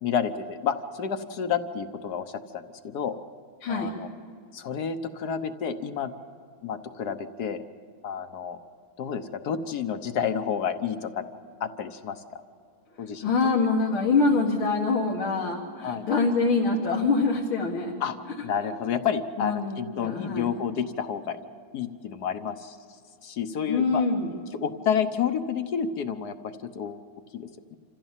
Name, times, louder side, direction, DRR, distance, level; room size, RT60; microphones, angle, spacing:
voice 1, 0.0-3.2 3.7-4.1 4.5-6.1 6.6-7.6 8.0-8.6 9.0-11.2 11.6-12.2 13.0-13.3 15.8-16.1 18.0-18.2 18.4-21.4 21.7-22.8 23.2-24.0 24.6-27.0 27.3-27.8, left 7 dB, 60° left, 9 dB, 1.3 m, -30 dB
voice 2, 3.6-3.9 13.2-18.0 19.4-20.5 23.7-24.3, left 4 dB, 85° left, -3 dB, 2.5 m, -25 dB
27.5 x 15.5 x 7.3 m, 2.3 s
omnidirectional pair, 2.2 m